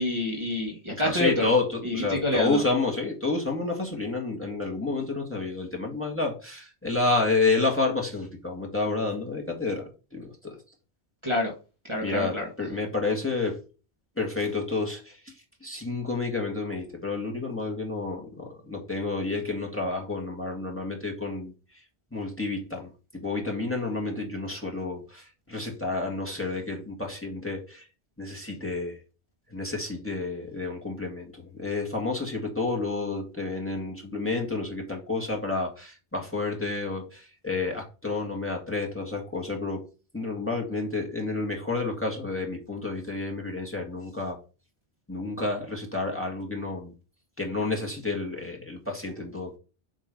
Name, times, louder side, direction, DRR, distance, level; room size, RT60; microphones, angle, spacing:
voice 1, 0.0-1.5 1.8-2.6 11.2-11.5 11.8-12.5, left 2 dB, 25° right, -1 dB, 1.4 m, -27 dB
voice 2, 0.9-10.6 12.0-13.6 14.2-15.3 15.6-21.5 22.1-27.8 28.2-29.0 29.5-39.9 40.1-44.4 45.1-46.9 47.4-49.6, left 3 dB, 10° left, 1 dB, 1.6 m, -30 dB
7.7 x 3.1 x 5.1 m, 0.33 s
omnidirectional pair, 1.1 m